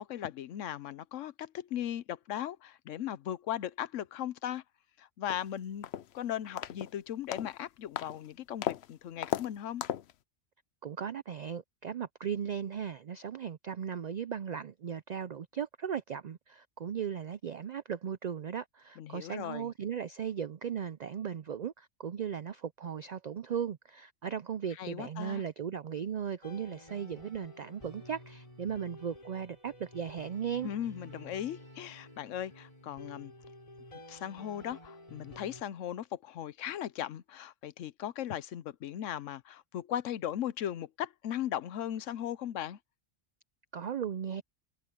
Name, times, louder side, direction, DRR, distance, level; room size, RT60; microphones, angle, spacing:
voice 1, 0.0-4.6 5.0-5.8 6.1-9.8 19.0-19.7 24.8-25.4 30.6-33.3 34.1-42.8, left 11 dB, 90° left, 1.1 m, -38 dB
sound 1, 5.3-5.4 5.8-6.2 6.6-6.9 7.3-7.6 8.0-8.2 8.6-8.9 9.2-9.5 9.8-10.1, left 11 dB, 65° left, 0.8 m, -35 dB
voice 2, 10.8-30.7 43.7-44.4, right 8 dB, 75° right, 0.4 m, -37 dB
sound 2, 26.4-35.6, left 1 dB, 25° left, 5.9 m, -51 dB
omnidirectional pair, 1.3 m